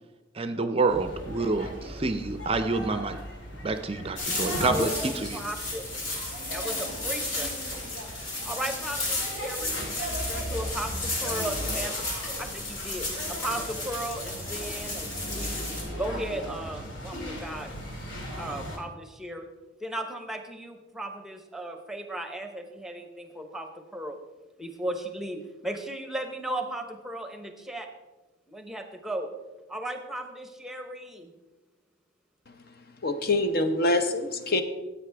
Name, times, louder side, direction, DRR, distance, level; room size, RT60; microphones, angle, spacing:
voice 1, 0.3-3.2 3.6-5.4, right 3 dB, 30° right, 9 dB, 0.5 m, -28 dB
sound 1, 0.9-18.8, equal, 70° left, 2.3 m, -38 dB
sound 2, 4.2-15.8, left 2 dB, 90° left, 4.2 m, -34 dB
voice 2, 4.6-5.9 6.5-7.5 8.0-11.9 12.4-17.7 18.4-19.5 19.8-24.2 24.6-27.9 28.5-29.3 29.7-31.3, right 1 dB, ahead, 6 dB, 0.9 m, -36 dB
voice 3, 33.0-34.6, left 2 dB, 50° left, 8 dB, 0.8 m, -25 dB
14.0 x 8.5 x 3.4 m, 1.1 s
head